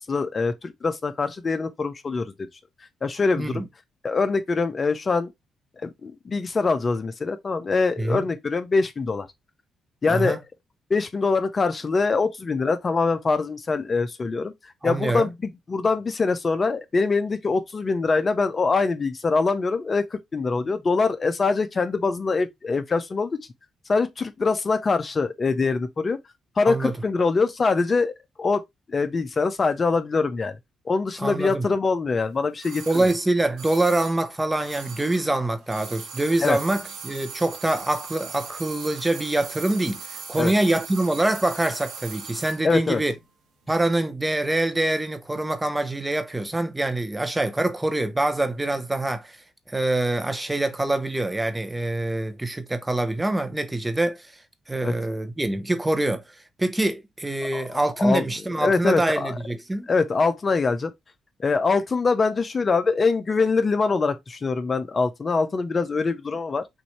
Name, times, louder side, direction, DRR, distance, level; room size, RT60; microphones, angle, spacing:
voice 1, 0.0-2.5 3.0-3.6 4.0-5.3 5.8-9.3 10.0-10.4 10.9-23.4 23.9-26.2 26.6-28.6 28.9-30.6 30.9-33.0 36.4-36.6 40.4-40.5 42.6-43.0 54.8-54.9 57.5-57.6 58.0-58.2 58.6-59.3 59.9-60.9 61.4-66.7, left 4 dB, 40° left, 0.7 m, -24 dB
voice 2, 10.1-10.4 14.8-15.3 26.7-27.0 31.2-31.6 32.9-43.1 43.7-49.4 49.7-54.4 54.7-59.9, right 2 dB, 15° right, 0.9 m, -25 dB
sound 1, 32.6-35.4 35.6-42.7 42.9-43.0, right 5 dB, 90° right, 2.0 m, -39 dB
6.1 x 2.7 x 3.2 m
cardioid pair, 70°, 0 cm